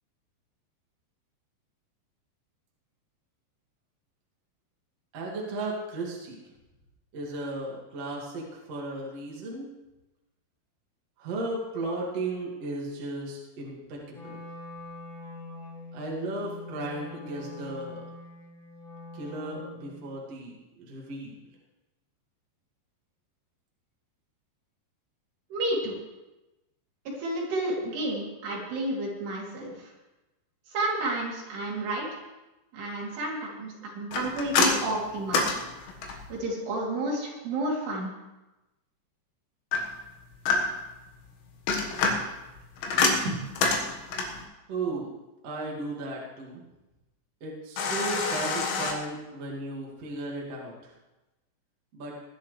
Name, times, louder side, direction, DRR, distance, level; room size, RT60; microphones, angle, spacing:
voice 1, 5.1-6.4 7.1-9.7 11.2-14.4 15.9-18.0 19.1-21.3 44.7-45.1 45.4-46.6 47.4-50.9 51.9-52.2, right 2 dB, 45° right, -3 dB, 2.4 m, -35 dB
Wind instrument woodwind instrument, 14.1-20.1, left 2 dB, 30° left, 1.7 m, -44 dB
voice 2, 25.5-26.0 27.2-29.9 30.7-32.2 32.7-35.5 36.3-38.1 43.2-43.4, right 1 dB, 65° right, -4 dB, 5.0 m, -31 dB
sound 1, 34.1-36.4 39.7-40.9 41.5-44.4 47.8-48.9, left 4 dB, 80° left, 3.8 m, -27 dB
20.5 x 11.5 x 3.3 m, 1.0 s
omnidirectional pair, 5.2 m